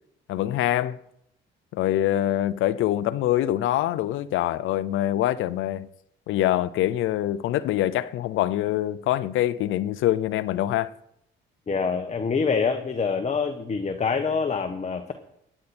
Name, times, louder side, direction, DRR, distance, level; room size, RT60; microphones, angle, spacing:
voice 1, 0.3-1.0 1.7-5.9 6.3-10.9, left 13 dB, 85° left, 0.6 m, -24 dB
voice 2, 11.7-15.1, left 5 dB, 35° left, 1.2 m, -25 dB
15.5 x 10.0 x 4.3 m
cardioid pair, 90°, 20 cm